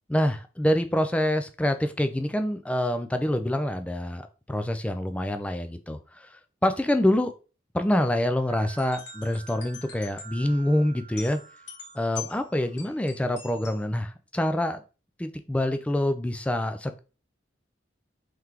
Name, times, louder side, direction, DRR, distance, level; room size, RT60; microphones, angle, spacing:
voice 1, 0.1-6.3 6.6-7.3 7.7-11.4 12.0-14.8 15.2-17.0, left 1 dB, 5° left, 0.3 m, -26 dB
sound 1, 8.5-13.8, left 3 dB, 65° left, 1.1 m, -44 dB
3.9 x 3.2 x 2.8 m
head